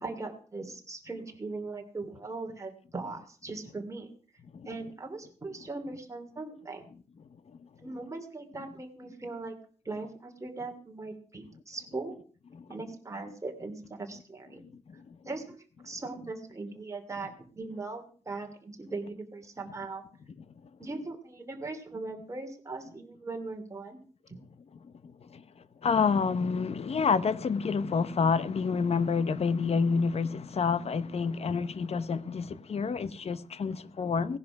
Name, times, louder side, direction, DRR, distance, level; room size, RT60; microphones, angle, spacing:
voice 1, 0.0-4.1 4.6-6.8 7.8-9.6 9.8-12.2 12.7-14.6 15.2-15.6 15.8-20.0 20.8-24.0 24.3-24.4, right 3 dB, 25° right, 2.8 m, -39 dB
voice 2, 25.8-34.4, left 5 dB, 55° left, 0.8 m, -28 dB
17.0 x 10.5 x 5.9 m
wide cardioid pair, 140°, 13 cm